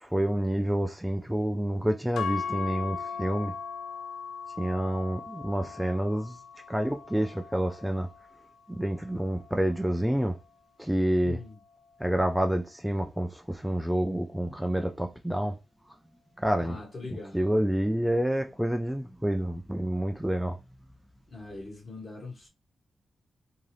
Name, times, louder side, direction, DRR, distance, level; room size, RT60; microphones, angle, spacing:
voice 1, 0.0-3.5 4.6-6.4 6.7-8.1 8.7-10.3 10.8-11.4 12.0-15.5 16.4-16.8 17.3-20.6, right 1 dB, 5° right, 0.4 m, -28 dB
sound 1, 2.2-10.4, left 6 dB, 85° left, 0.3 m, -39 dB
voice 2, 11.2-11.6 16.6-17.6 21.3-22.5, left 3 dB, 50° left, 1.4 m, -42 dB
2.7 x 2.4 x 3.2 m
supercardioid pair, 45°, 0 cm